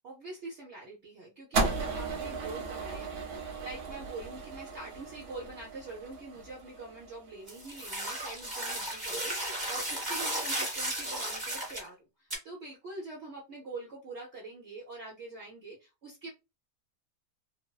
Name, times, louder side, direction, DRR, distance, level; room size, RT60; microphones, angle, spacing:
voice 1, 0.0-16.3, right 2 dB, 55° right, -3 dB, 0.9 m, -44 dB
sound 1, 1.5-7.9, right 3 dB, 75° right, 1.3 m, -36 dB
sound 2, 7.5-11.9 12.3-12.4, right 1 dB, 20° right, 0.7 m, -34 dB
3.3 x 2.0 x 2.2 m, 0.25 s
omnidirectional pair, 1.7 m